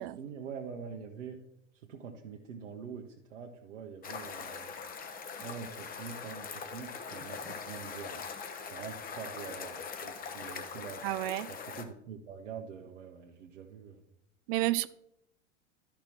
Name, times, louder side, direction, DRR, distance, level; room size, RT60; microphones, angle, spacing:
voice 1, 0.0-1.4 1.7-4.7 5.4-8.2 8.7-11.0 11.5-14.0, right 6 dB, 70° right, 1.2 m, -45 dB
sound 1, 4.0-11.8, left 5 dB, 25° left, 1.0 m, -42 dB
voice 2, 11.0-11.5 14.5-14.9, right 16 dB, 45° right, 0.5 m, -30 dB
12.0 x 6.0 x 4.3 m
figure-of-eight pair, 85°, 37 cm